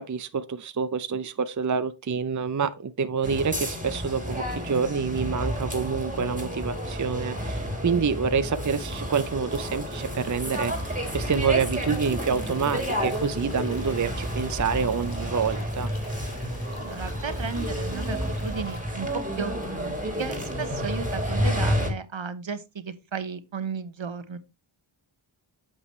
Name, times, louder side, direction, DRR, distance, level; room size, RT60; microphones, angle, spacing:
voice 1, 0.0-15.9, right 6 dB, 40° right, 0.5 m, -27 dB
sound 1, 3.2-21.9, equal, 15° right, 2.7 m, -30 dB
sound 2, 9.9-18.8, left 2 dB, 45° left, 2.1 m, -47 dB
voice 2, 16.8-19.1 19.4-24.4, right 6 dB, 65° right, 1.0 m, -34 dB
8.4 x 7.0 x 3.1 m
wide cardioid pair, 60°, 50 cm